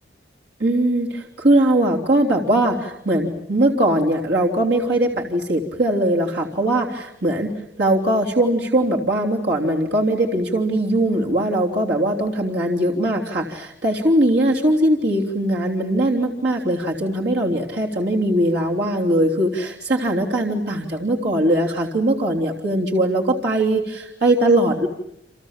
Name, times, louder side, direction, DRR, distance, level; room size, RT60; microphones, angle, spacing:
voice 1, 0.6-24.9, right 1 dB, 60° right, -1 dB, 3.2 m, -20 dB
29.5 x 27.5 x 7.4 m, 0.76 s
head